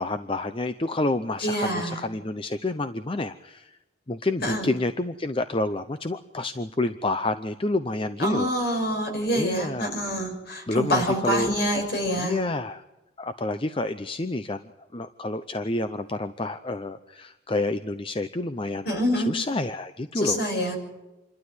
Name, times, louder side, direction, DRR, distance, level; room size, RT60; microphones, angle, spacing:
voice 1, 0.0-3.7 4.1-8.8 9.3-9.9 10.7-11.5 12.1-12.8 13.2-18.9 19.2-20.4 20.7-20.8, left 2 dB, 25° left, 10 dB, 0.7 m, -29 dB
voice 2, 1.4-2.0 4.4-4.7 8.2-12.4 18.8-19.3 20.1-20.8, equal, 55° left, 4 dB, 6.3 m, -26 dB
27.5 x 12.5 x 9.8 m, 1.0 s
head